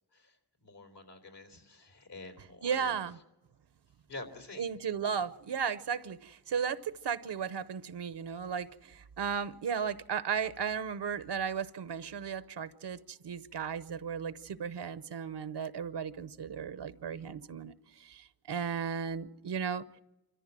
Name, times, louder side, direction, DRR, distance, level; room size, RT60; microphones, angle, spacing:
voice 1, 0.6-3.0 4.1-4.7, left 2 dB, 80° left, 4 dB, 4.0 m, -47 dB
voice 2, 2.6-3.2 4.6-20.0, right 7 dB, 90° right, 15 dB, 0.8 m, -35 dB
26.0 x 14.5 x 7.5 m, 1.0 s
wide cardioid pair, 60°, 40 cm